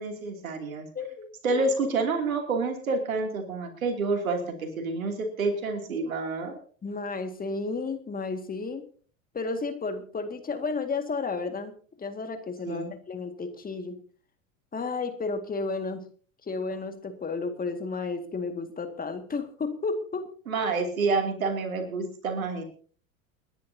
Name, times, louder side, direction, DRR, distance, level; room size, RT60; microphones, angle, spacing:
voice 1, 0.0-0.9 1.4-6.6 12.7-12.9 20.5-22.6, right 3 dB, 85° right, 4 dB, 2.9 m, -28 dB
voice 2, 0.9-1.6 6.8-8.9 9.3-11.7 12.0-14.0 14.7-16.1 16.5-20.3, left 4 dB, 20° left, 7 dB, 2.0 m, -32 dB
29.0 x 10.5 x 2.8 m, 0.43 s
hypercardioid pair, 85°, 40 cm